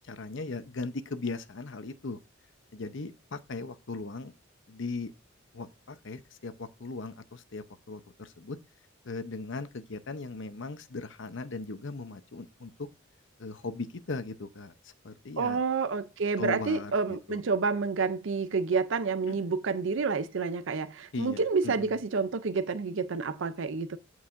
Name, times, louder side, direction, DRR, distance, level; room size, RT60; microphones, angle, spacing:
voice 1, 0.0-2.2 2.7-4.3 4.7-5.1 5.5-8.6 9.0-12.9 13.4-15.6 16.4-16.9 17.3-17.4 19.3-19.4 21.1-22.0, left 3 dB, 60° left, 0.8 m, -38 dB
voice 2, 15.4-24.0, right 4 dB, 60° right, 0.5 m, -29 dB
14.0 x 4.8 x 2.6 m
head